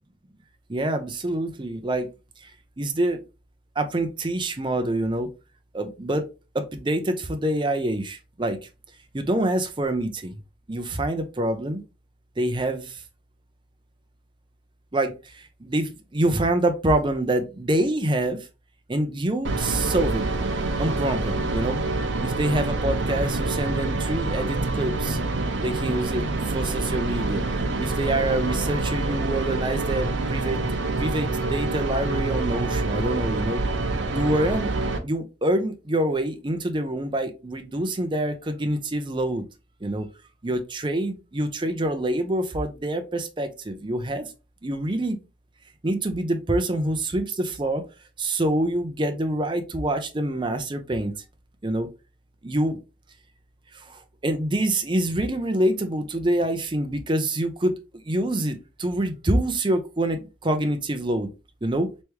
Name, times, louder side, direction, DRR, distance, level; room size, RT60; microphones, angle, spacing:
voice 1, 0.7-2.1 2.4-2.5 2.8-3.2 3.8-5.3 5.7-6.2 6.5-8.6 9.1-10.3 10.7-11.8 12.4-13.0 14.9-18.4 18.9-20.2 20.8-21.8 22.2-25.2 25.6-27.4 27.8-30.7 31.0-33.6 34.1-34.7 35.0-39.5 39.8-40.1 40.4-44.3 44.6-45.2 45.8-47.8 48.2-51.1 51.6-51.9 52.4-52.8 53.7-57.8 58.1-61.3 61.6-61.9, right 1 dB, 25° right, 0.6 m, -26 dB
sound 1, 19.4-35.0, right 2 dB, 85° right, 0.6 m, -26 dB
3.4 x 3.1 x 3.0 m
head